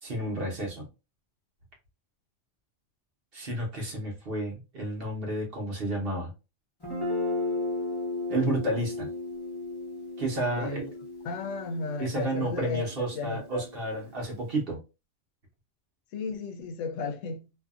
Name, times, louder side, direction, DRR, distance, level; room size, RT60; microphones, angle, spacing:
voice 1, 0.0-0.9 3.3-6.3 8.3-9.1 10.2-10.8 12.0-14.8, right 1 dB, 50° right, 1.1 m, -31 dB
Guitar, 6.8-14.5, left 2 dB, 20° left, 0.9 m, -35 dB
voice 2, 10.6-10.9 11.2-12.9 13.1-13.6 16.1-17.5, left 4 dB, 85° left, 1.0 m, -34 dB
2.7 x 2.5 x 2.4 m
omnidirectional pair, 1.3 m